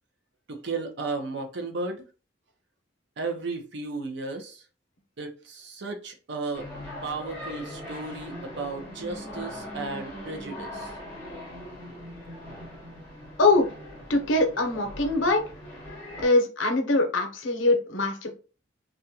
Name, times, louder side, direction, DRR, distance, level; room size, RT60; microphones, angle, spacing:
voice 1, 0.5-2.0 3.2-4.6 5.2-10.9, right 3 dB, 65° right, 0.6 m, -34 dB
sound 1, 6.5-16.3, equal, 10° left, 1.0 m, -40 dB
voice 2, 13.4-13.7 14.1-15.4 16.2-18.4, left 2 dB, 90° left, 0.6 m, -23 dB
2.4 x 2.2 x 2.7 m
head